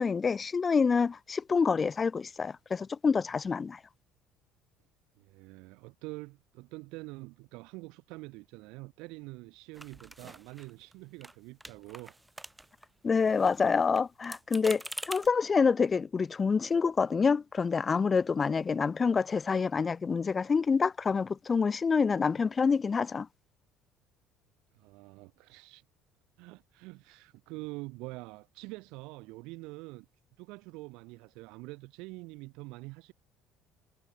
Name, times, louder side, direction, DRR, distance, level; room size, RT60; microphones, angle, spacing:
voice 1, 0.0-3.8 13.0-23.3, left 5 dB, 30° left, 0.5 m, -27 dB
voice 2, 5.2-12.2 24.7-25.8 26.4-30.1 30.4-33.1, right 24 dB, 60° right, 4.2 m, -45 dB
Mechanical Keyboard Typing, 9.7-10.9 11.2-11.3 11.6-12.9 13.2-15.3, right 1 dB, 10° right, 4.4 m, -44 dB
figure-of-eight pair, 55°, 0 cm